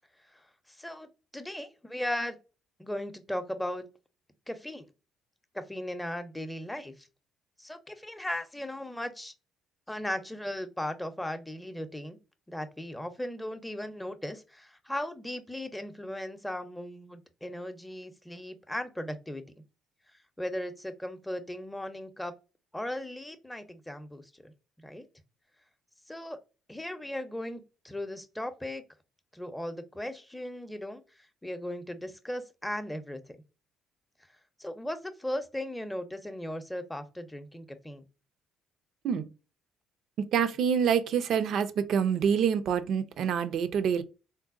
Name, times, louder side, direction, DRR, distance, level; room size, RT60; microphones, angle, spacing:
voice 1, 0.8-1.1 1.3-2.4 2.8-3.9 4.5-4.9 5.5-7.1 7.6-9.3 9.9-12.2 12.5-19.4 20.4-22.3 22.7-24.5 24.8-25.1 26.1-26.4 26.7-28.8 29.3-31.0 31.4-33.2 34.6-38.0, left 1 dB, 10° left, 0.6 m, -37 dB
voice 2, 40.3-44.0, right 7 dB, 65° right, 0.4 m, -26 dB
3.9 x 2.1 x 2.5 m
supercardioid pair, 60°, 0 cm